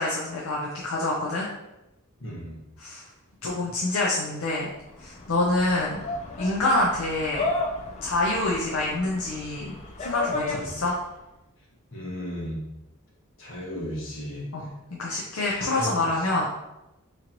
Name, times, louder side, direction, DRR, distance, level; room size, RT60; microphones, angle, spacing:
voice 1, 0.0-1.5 2.8-3.1 3.4-4.7 5.0-6.0 6.4-7.4 8.0-11.0 14.5-14.7 15.0-16.5, left 2 dB, 75° left, -4 dB, 0.6 m, -26 dB
voice 2, 2.2-2.6 10.5-10.6 11.9-12.6 13.4-14.5 15.5-15.9, equal, 60° left, -4 dB, 1.2 m, -34 dB
sound 1, 4.7-11.1, left 2 dB, 30° left, 0.4 m, -34 dB
3.8 x 3.0 x 2.9 m, 0.93 s
head